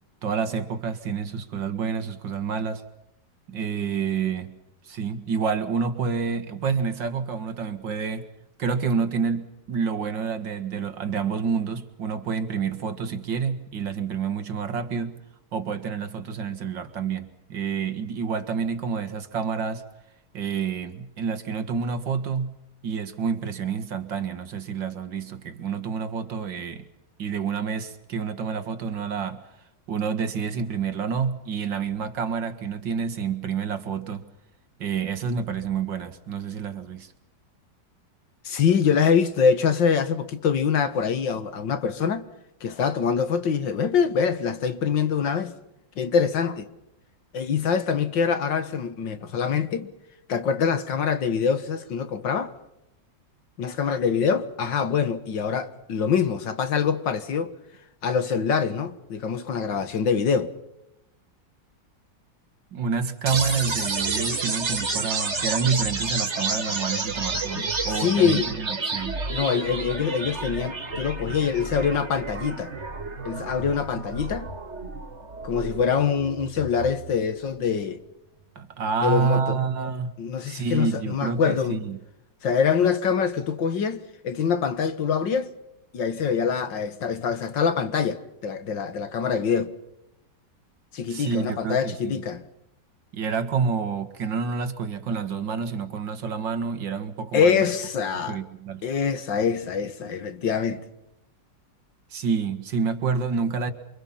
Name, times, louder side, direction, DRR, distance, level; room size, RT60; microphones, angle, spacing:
voice 1, 0.2-2.8 3.5-4.5 4.8-8.3 8.6-15.2 15.5-19.8 20.3-22.5 22.8-26.8 27.2-29.4 29.9-34.2 34.8-37.1 62.7-69.2 78.6-80.1 80.4-82.0 91.1-92.2 93.1-97.7 98.1-98.8 102.1-103.7, right 6 dB, 80° right, 2.5 m, -28 dB
voice 2, 38.4-42.2 42.6-45.5 46.0-46.7 47.3-49.9 50.3-52.5 53.6-57.5 58.0-60.5 67.6-68.5 69.3-72.7 73.2-74.5 75.4-78.0 79.0-79.6 80.2-81.8 82.4-85.5 85.9-89.7 90.9-92.4 97.3-98.4 98.8-100.8, left 6 dB, 80° left, 2.3 m, -24 dB
sound 1, 63.3-77.2, right 3 dB, 40° right, 2.4 m, -30 dB
28.0 x 25.0 x 5.8 m
omnidirectional pair, 2.0 m